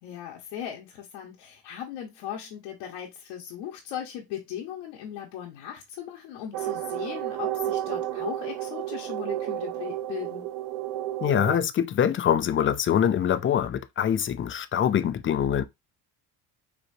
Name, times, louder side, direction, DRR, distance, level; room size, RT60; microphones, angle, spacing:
voice 1, 0.0-10.4, left 10 dB, 90° left, 1.2 m, -38 dB
sound 1, 6.5-11.6, right 13 dB, 75° right, 0.6 m, -31 dB
voice 2, 11.2-15.7, left 9 dB, 30° left, 0.4 m, -24 dB
5.0 x 3.0 x 2.7 m
cardioid pair, 105°, 42 cm